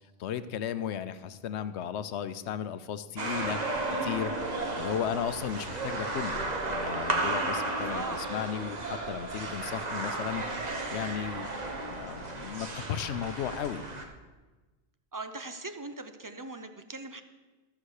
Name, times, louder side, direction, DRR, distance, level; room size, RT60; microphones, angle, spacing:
voice 1, 0.2-3.6 4.0-4.3 4.7-8.0 8.3-10.4 10.9-11.5 11.9-13.9, left 9 dB, 85° left, 13 dB, 0.9 m, -35 dB
sound 1, 3.2-14.0, right 2 dB, 40° right, 1.2 m, -33 dB
voice 2, 7.9-8.5 15.1-17.2, right 3 dB, 25° right, 8 dB, 0.6 m, -40 dB
14.0 x 6.2 x 6.5 m, 1.2 s
omnidirectional pair, 1.1 m